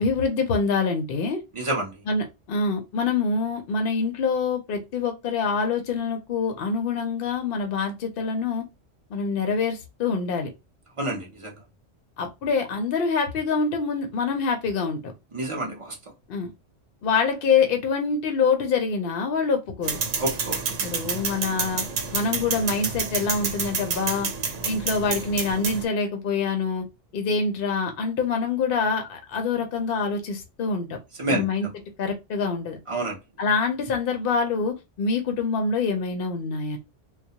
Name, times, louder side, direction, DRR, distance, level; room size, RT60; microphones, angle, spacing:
voice 1, 0.0-1.4 2.1-8.6 9.1-10.5 12.2-15.0 16.3-16.5 17.0-20.0 20.8-21.8 22.1-24.3 24.6-26.8 27.1-31.0 31.3-31.7 32.0-32.8 33.4-36.8, left 4 dB, 60° left, 0.7 m, -25 dB
voice 2, 1.5-2.0 11.0-11.6 15.3-16.0 20.2-20.6 31.2-31.7 32.9-33.2, right 2 dB, 40° right, 0.5 m, -28 dB
sound 1, 19.8-25.8, right 5 dB, 85° right, 1.0 m, -29 dB
2.3 x 2.0 x 2.7 m
omnidirectional pair, 1.3 m